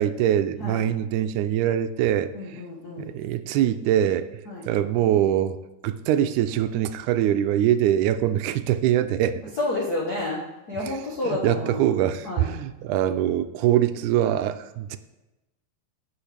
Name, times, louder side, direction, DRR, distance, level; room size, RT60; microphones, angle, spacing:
voice 1, 0.0-2.6 3.0-4.3 4.7-5.6 5.8-9.4 10.8-10.9 11.2-15.0, right 11 dB, 85° right, 11 dB, 2.0 m, -23 dB
voice 2, 2.3-3.1 4.5-4.6 9.6-11.9 12.2-12.5, left 2 dB, 60° left, -4 dB, 1.0 m, -30 dB
16.5 x 5.5 x 3.4 m, 1.0 s
omnidirectional pair, 3.5 m